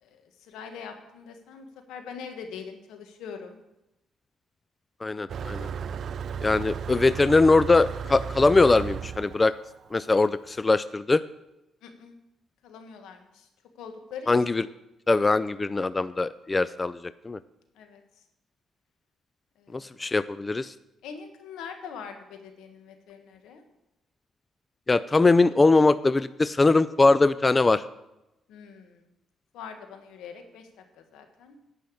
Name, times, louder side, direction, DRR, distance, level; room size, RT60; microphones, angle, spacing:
voice 1, 0.0-3.6 11.8-12.2 12.6-13.5 13.7-14.3 17.7-18.0 19.6-20.0 21.0-23.6 28.5-29.0 29.5-30.7 30.9-31.6, left 6 dB, 85° left, 6 dB, 1.5 m, -43 dB
voice 2, 5.0-5.7 6.4-9.5 9.9-11.2 14.3-14.6 15.1-17.4 19.7-20.7 24.9-27.8, left 3 dB, 25° left, 15 dB, 0.3 m, -21 dB
Motor vehicle (road), 5.3-10.5, right 7 dB, 60° right, 0.4 m, -35 dB
10.5 x 5.7 x 8.4 m, 0.92 s
cardioid pair, 90°, 0 cm